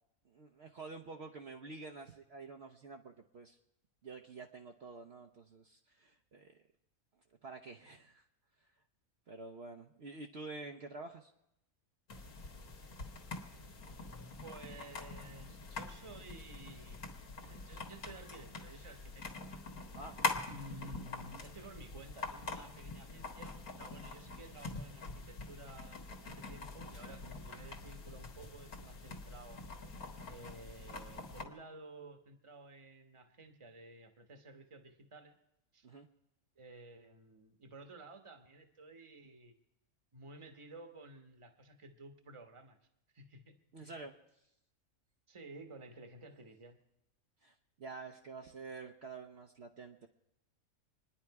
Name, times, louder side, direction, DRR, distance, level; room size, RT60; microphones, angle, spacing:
voice 1, 0.3-3.6 4.0-6.6 7.4-8.2 9.3-11.3 19.9-20.2 35.8-36.1 43.7-44.1 47.4-50.1, right 3 dB, 50° right, 2 dB, 1.0 m, -48 dB
sound 1, 12.1-31.4, left 3 dB, 80° left, 2.0 m, -44 dB
voice 2, 14.4-17.0 17.4-19.2 19.7-19.9 20.5-29.6 30.3-35.3 35.7-35.9 36.6-39.5 40.1-42.8 43.1-44.1 45.3-46.8, right 2 dB, 25° right, 6 dB, 1.1 m, -53 dB
26.5 x 10.5 x 4.7 m, 0.84 s
omnidirectional pair, 1.5 m